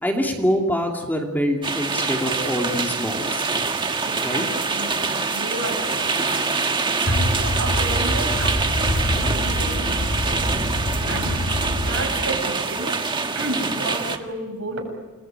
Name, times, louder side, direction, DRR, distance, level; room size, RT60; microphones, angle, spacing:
voice 1, 0.0-3.4 4.2-4.4, equal, 10° left, 1 dB, 2.6 m, -24 dB
sound 1, 1.6-14.2, right 4 dB, 20° right, 1.6 m, -25 dB
voice 2, 4.0-10.5 11.1-11.4 11.8-13.0 13.3-14.9, right 2 dB, 65° right, 3 dB, 7.6 m, -32 dB
sound 2, 7.1-12.4, left 1 dB, 70° left, 3.4 m, -25 dB
29.5 x 21.0 x 9.0 m, 1.1 s
head